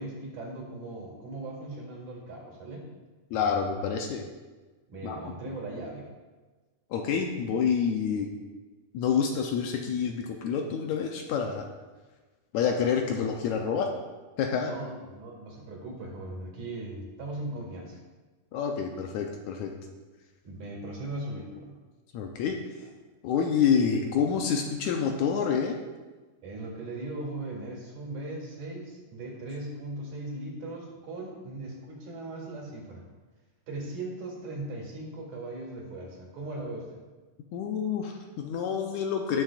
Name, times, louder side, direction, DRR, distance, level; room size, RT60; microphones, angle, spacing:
voice 1, 0.0-2.9 4.9-6.1 14.6-18.0 20.4-21.8 26.4-33.1 33.7-37.0, right 2 dB, 70° right, -2 dB, 3.7 m, -38 dB
voice 2, 3.3-4.2 5.0-5.2 5.5-5.6 6.9-8.3 8.9-11.6 12.5-13.9 14.4-14.7 18.5-19.7 22.1-22.9 23.2-25.8 37.5-39.4, left 6 dB, 75° left, 2 dB, 1.9 m, -28 dB
18.0 x 6.3 x 2.5 m, 1.3 s
omnidirectional pair, 3.7 m